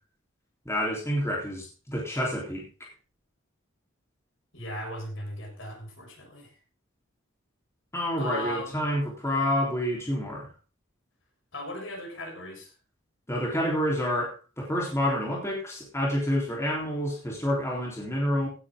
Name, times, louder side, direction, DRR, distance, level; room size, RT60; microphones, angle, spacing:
voice 1, 0.7-2.9 7.9-10.5 13.3-18.5, equal, 15° left, -2 dB, 3.7 m, -28 dB
voice 2, 4.5-6.5 8.2-8.9 11.5-12.7, equal, 60° left, 1 dB, 6.2 m, -37 dB
16.5 x 9.8 x 3.8 m, 0.33 s
head